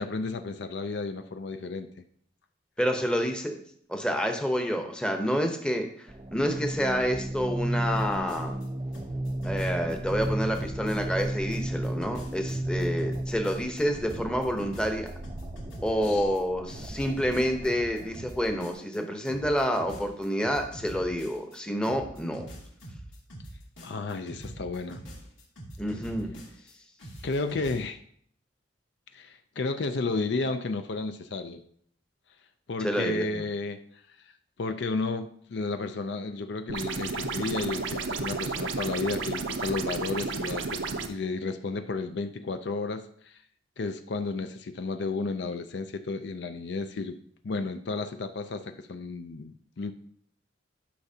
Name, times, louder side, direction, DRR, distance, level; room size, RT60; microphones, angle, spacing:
voice 1, 0.0-1.9 16.0-16.3 23.8-25.0 27.2-28.0 29.1-31.6 32.7-33.8 34.6-40.8 41.1-43.4 43.8-47.2 47.4-49.9, left 3 dB, 60° left, 8 dB, 0.5 m, -32 dB
voice 2, 2.8-3.5 3.9-8.6 9.4-15.1 15.8-22.4 25.8-26.4 32.8-33.4, equal, 5° left, 4 dB, 0.8 m, -28 dB
sound 1, 6.1-18.7, right 1 dB, 25° right, 0.5 m, -34 dB
sound 2, 8.0-8.7 8.9-11.2 11.5-16.4 16.7-19.0 19.3-21.6 21.8-26.7 27.0-27.8, right 1 dB, 85° left, 2.3 m, -44 dB
sound 3, 36.7-41.1, right 4 dB, 80° right, 0.7 m, -32 dB
11.5 x 5.8 x 2.8 m, 0.63 s
head